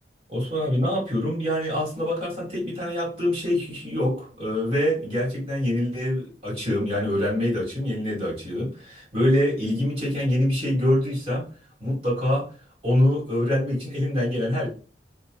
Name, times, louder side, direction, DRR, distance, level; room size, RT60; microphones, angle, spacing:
voice 1, 0.3-11.4 11.8-12.5 12.8-14.7, left 1 dB, 35° right, -4 dB, 1.7 m, -25 dB
4.8 x 2.1 x 3.0 m, 0.36 s
head